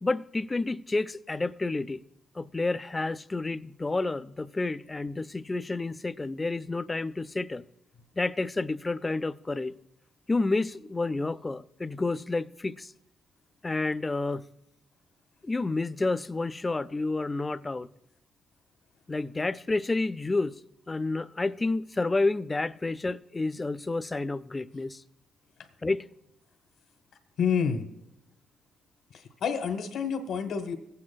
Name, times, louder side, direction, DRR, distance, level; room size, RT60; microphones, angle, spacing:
voice 1, 0.0-2.0 2.4-7.6 8.2-9.7 10.3-12.9 13.6-14.4 15.4-17.9 19.1-20.5 20.9-25.0 25.8-26.0, left 3 dB, 20° left, 0.3 m, -30 dB
voice 2, 27.4-27.9 29.1-30.7, left 6 dB, 70° left, 1.1 m, -28 dB
17.0 x 8.5 x 2.3 m
cardioid pair, 90°, 0 cm